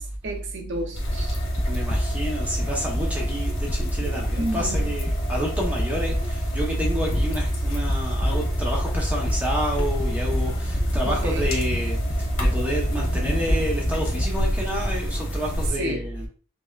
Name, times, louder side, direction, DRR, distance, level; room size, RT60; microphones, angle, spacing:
voice 1, 0.0-1.4 4.4-4.9 11.0-11.5 15.8-16.1, right 1 dB, 60° right, 0.6 m, -31 dB
sound 1, 0.9-15.7, equal, 75° left, 1.1 m, -30 dB
sound 2, 1.1-14.3, equal, 20° left, 0.4 m, -28 dB
voice 2, 1.7-12.0 12.4-16.3, equal, 10° right, 0.8 m, -28 dB
5.3 x 2.0 x 2.3 m
head